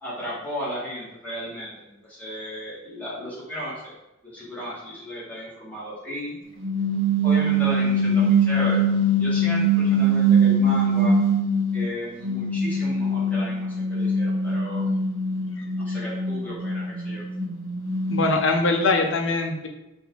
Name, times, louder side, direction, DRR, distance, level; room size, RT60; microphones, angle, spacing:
voice 1, 0.0-3.9 4.2-6.3 7.2-8.8 9.2-11.2 11.7-14.9 15.8-17.2, equal, 5° left, -8 dB, 1.6 m, -34 dB
sound 1, 6.6-11.9 12.2-18.5, right 2 dB, 65° right, 0.6 m, -22 dB
voice 2, 18.1-19.7, left 3 dB, 60° left, 3 dB, 0.7 m, -22 dB
4.5 x 2.7 x 4.5 m, 0.95 s
head